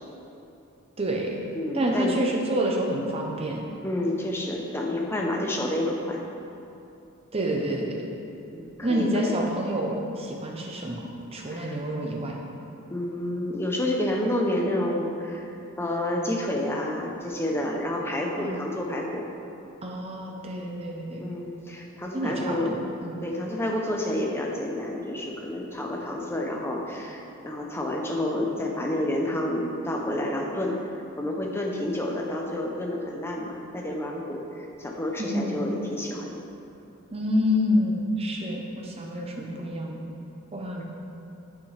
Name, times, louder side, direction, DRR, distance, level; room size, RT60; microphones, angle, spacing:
voice 1, 1.0-1.4 1.7-3.7 7.3-8.0 8.8-11.0 11.3-12.4 18.4-18.6 19.8-21.2 22.1-22.8 23.0-23.2 35.2-35.7 37.1-40.0 40.5-40.8, equal, 25° right, -1 dB, 0.7 m, -28 dB
voice 2, 1.5-2.2 3.8-6.2 8.5-9.3 11.5-11.8 12.9-19.3 21.2-22.8 23.2-30.9 31.2-36.3, left 1 dB, 10° left, -1 dB, 0.6 m, -29 dB
8.8 x 5.7 x 3.3 m, 2.8 s
head